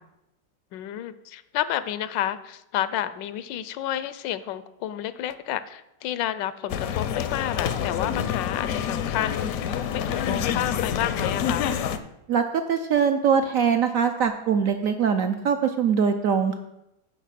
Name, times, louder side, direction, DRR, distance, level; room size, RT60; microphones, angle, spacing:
voice 1, 0.7-11.7, left 12 dB, 85° left, 15 dB, 1.3 m, -30 dB
sound 1, 6.7-12.0, left 8 dB, 70° left, 0.9 m, -27 dB
voice 2, 12.3-16.6, right 7 dB, 70° right, 7 dB, 0.8 m, -22 dB
9.2 x 4.5 x 7.4 m, 0.88 s
omnidirectional pair, 1.9 m